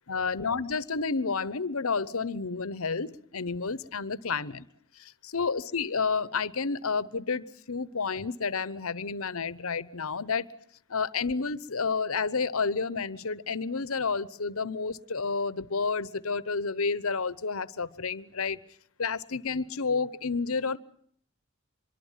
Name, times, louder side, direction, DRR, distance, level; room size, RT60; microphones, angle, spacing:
voice 1, 0.1-4.7 5.0-10.5 10.9-18.6 19.0-20.8, left 4 dB, 70° left, 18 dB, 0.9 m, -30 dB
25.0 x 23.0 x 7.4 m, 0.64 s
head